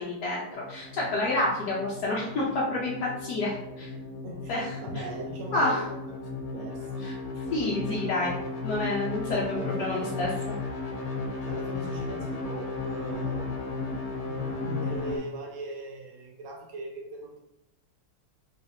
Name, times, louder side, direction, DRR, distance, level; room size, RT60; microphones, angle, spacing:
voice 1, 0.0-3.9 4.5-5.0 5.5-5.8 7.0-7.1 7.5-8.3 8.6-10.3, left 2 dB, 65° left, -5 dB, 1.0 m, -29 dB
sound 1, 0.5-15.2, left 3 dB, 85° left, 1.7 m, -35 dB
voice 2, 4.2-7.0 9.5-10.3 11.4-13.6 14.2-17.4, right 2 dB, 75° right, 1 dB, 1.4 m, -40 dB
3.9 x 3.2 x 2.7 m, 0.86 s
omnidirectional pair, 2.4 m